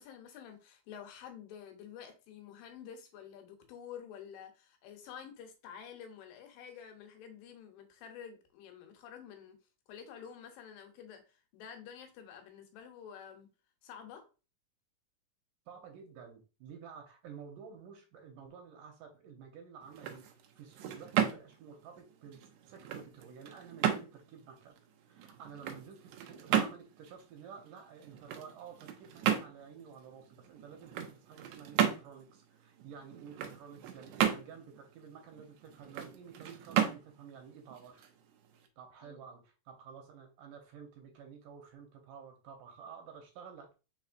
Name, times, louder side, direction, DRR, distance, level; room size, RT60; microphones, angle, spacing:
voice 1, 0.0-9.6 9.9-13.5 13.8-14.2 39.0-39.2, left 8 dB, 80° left, 2.6 m, -49 dB
voice 2, 15.7-20.3 20.6-24.7 25.1-38.1 38.8-43.7, right 6 dB, 75° right, 2.2 m, -51 dB
sound 1, 19.8-38.7, right 9 dB, 90° right, 1.7 m, -35 dB
5.0 x 4.2 x 2.5 m
omnidirectional pair, 4.1 m